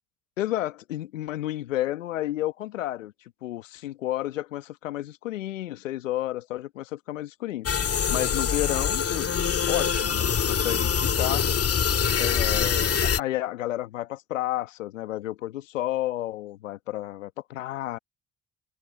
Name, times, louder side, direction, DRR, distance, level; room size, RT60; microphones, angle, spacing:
voice 1, 0.4-3.1 3.4-7.7 8.1-9.4 9.7-11.5 12.2-18.0, left 14 dB, 85° left, 1.5 m, -31 dB
sound 1, 7.7-13.2, left 7 dB, 40° left, 2.0 m, -24 dB
hypercardioid pair, 50°, 38 cm